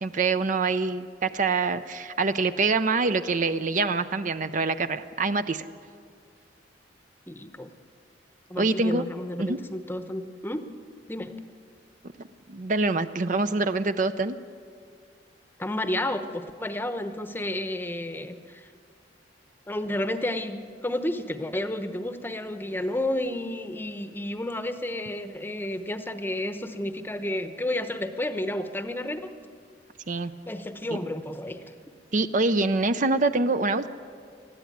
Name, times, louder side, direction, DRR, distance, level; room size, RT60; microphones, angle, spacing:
voice 1, 0.0-5.7 8.6-9.0 9.4-9.6 12.5-14.4 30.1-30.3 32.1-33.9, right 3 dB, 45° right, 11 dB, 0.6 m, -25 dB
voice 2, 7.3-7.7 8.5-10.6 11.1-11.3 15.6-18.7 19.7-29.3 30.5-31.7, left 1 dB, 10° left, 9 dB, 0.9 m, -31 dB
20.0 x 14.0 x 9.4 m, 2.2 s
head